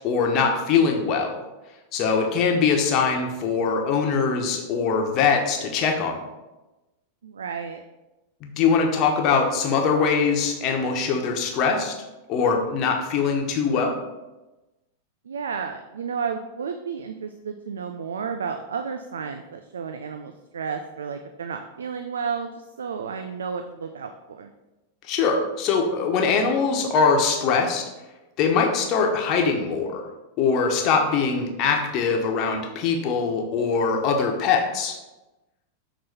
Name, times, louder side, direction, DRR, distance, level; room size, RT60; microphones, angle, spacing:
voice 1, 0.0-1.4 1.9-6.2 8.4-11.9 12.3-13.9 25.1-27.8 28.4-30.0 30.4-35.0, left 5 dB, 45° left, 2 dB, 1.2 m, -22 dB
voice 2, 7.2-7.8 15.3-24.5, right 6 dB, 75° right, 6 dB, 0.4 m, -32 dB
6.6 x 4.0 x 4.1 m, 1.1 s
figure-of-eight pair, 95°, 0 cm